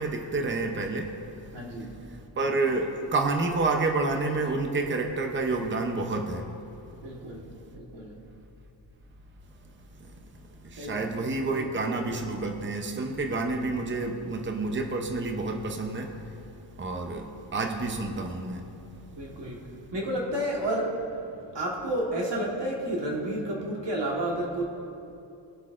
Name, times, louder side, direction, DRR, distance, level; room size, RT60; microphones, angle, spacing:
voice 1, 0.0-1.6 1.9-6.5 6.8-6.9 7.4-7.5 9.7-9.8 10.0-18.7 19.3-19.8, right 3 dB, 25° right, 3 dB, 0.7 m, -30 dB
voice 2, 1.5-1.9 7.0-8.2 10.8-11.1 19.1-24.6, right 1 dB, 65° right, -2 dB, 1.5 m, -31 dB
21.0 x 8.0 x 2.5 m, 2.7 s
wide cardioid pair, 170°, 46 cm